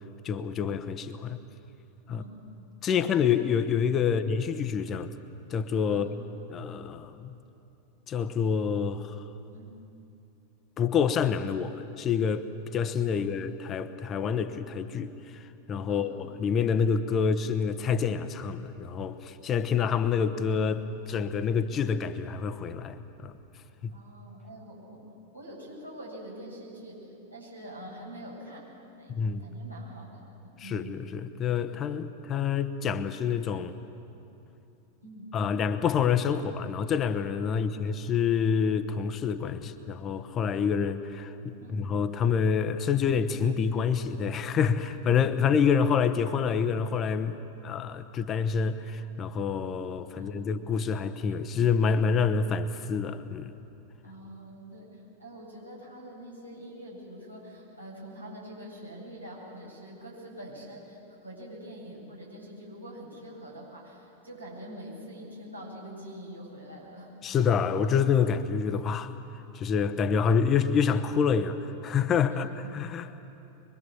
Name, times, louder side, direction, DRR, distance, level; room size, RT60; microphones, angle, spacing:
voice 1, 0.2-1.4 2.1-2.2 2.8-5.1 5.5-6.1 6.5-7.3 8.1-9.2 10.8-12.5 12.7-23.3 23.8-24.0 29.1-29.4 30.6-33.8 35.3-53.6 67.2-69.2 69.5-73.2, left 6 dB, 30° left, 11 dB, 1.1 m, -27 dB
voice 2, 5.9-6.2 9.5-9.9 13.1-13.4 15.9-16.2 23.9-25.0 25.3-28.6 29.0-30.4 30.6-30.9 31.4-31.7 35.0-35.3 37.5-38.0 41.6-41.8 50.1-50.3 54.0-67.1 72.3-72.8, right 1 dB, 90° right, -5 dB, 7.9 m, -45 dB
23.5 x 23.5 x 7.2 m, 2.8 s
figure-of-eight pair, 90°, 0 cm